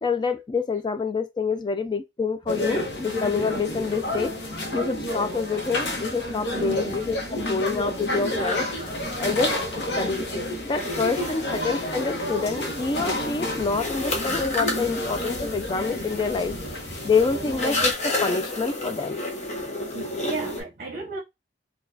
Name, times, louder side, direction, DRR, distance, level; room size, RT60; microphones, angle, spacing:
voice 1, 0.0-4.3 4.7-8.6 9.2-9.6 10.0-10.2 10.6-16.5 17.0-19.2, left 4 dB, 25° left, 0.3 m, -27 dB
sound 1, 2.5-17.9, left 1 dB, 75° left, 0.9 m, -30 dB
voice 2, 6.5-7.1 11.1-11.6 19.9-21.2, right 3 dB, 50° right, 0.7 m, -34 dB
sound 2, 8.4-20.6, left 2 dB, 40° left, 0.9 m, -33 dB
3.9 x 2.3 x 2.6 m
head